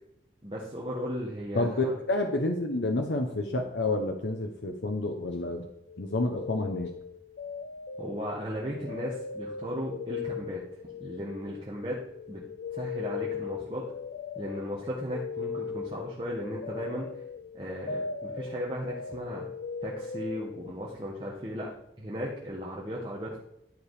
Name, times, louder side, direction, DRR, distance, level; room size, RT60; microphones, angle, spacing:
voice 1, 0.4-1.9 8.0-10.6 11.0-12.0 12.3-12.4 12.7-13.8 14.3-17.1 17.5-19.5 19.8-21.7 22.0-23.4, equal, 30° right, -4 dB, 1.5 m, -36 dB
voice 2, 1.5-5.7 6.0-6.9, left 2 dB, 90° left, 4 dB, 0.9 m, -29 dB
sound 1, 5.9-11.9 12.1-20.7, left 5 dB, 65° left, 0.3 m, -39 dB
11.5 x 5.1 x 4.9 m, 0.79 s
head